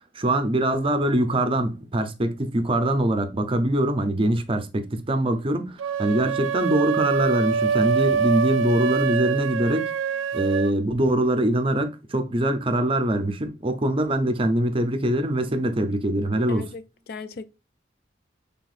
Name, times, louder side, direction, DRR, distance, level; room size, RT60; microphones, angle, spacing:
voice 1, 0.1-9.9 10.3-16.7, right 1 dB, 30° right, 0.6 m, -23 dB
sound 1, 5.8-10.8, right 6 dB, 85° right, 0.3 m, -25 dB
voice 2, 16.5-17.4, left 4 dB, 50° left, 0.4 m, -38 dB
5.9 x 3.5 x 2.4 m
head